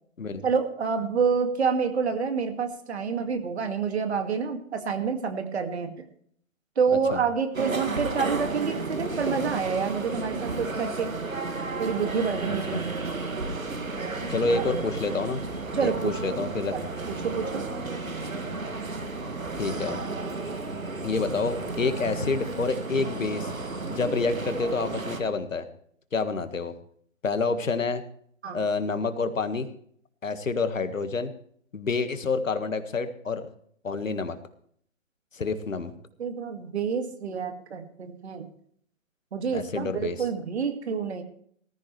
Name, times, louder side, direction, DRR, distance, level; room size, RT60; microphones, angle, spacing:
voice 1, 0.4-6.0 6.8-11.1 11.8-12.8 14.4-14.6 15.7-16.1 16.7-17.6 28.4-28.6 36.2-38.5 39.3-41.2, right 5 dB, 50° right, 6 dB, 2.2 m, -28 dB
voice 2, 6.9-7.2 12.5-12.8 14.3-15.4 15.8-16.7 19.6-20.1 21.0-23.5 23.9-25.7 26.1-26.7 27.2-28.0 28.5-29.7 30.2-31.3 31.7-33.5 33.8-34.4 35.3-35.9 39.5-40.2, left 4 dB, 70° left, 10 dB, 1.7 m, -28 dB
sound 1, 7.5-25.2, right 3 dB, 85° right, 2.1 m, -33 dB
sound 2, 11.8-24.0, right 1 dB, 10° right, 4.1 m, -47 dB
19.5 x 14.0 x 3.3 m, 0.63 s
figure-of-eight pair, 140°, 40 cm